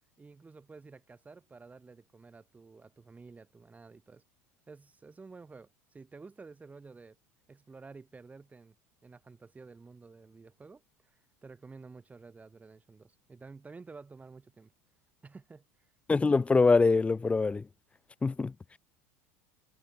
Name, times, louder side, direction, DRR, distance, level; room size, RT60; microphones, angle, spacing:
voice 1, 0.2-4.2 4.7-7.2 7.5-8.8 9.0-14.7 15.2-15.7, right 4 dB, 20° right, 7.1 m, -51 dB
voice 2, 16.1-17.7 18.2-18.5, left 4 dB, 15° left, 0.5 m, -24 dB
hypercardioid pair, 75°, 8 cm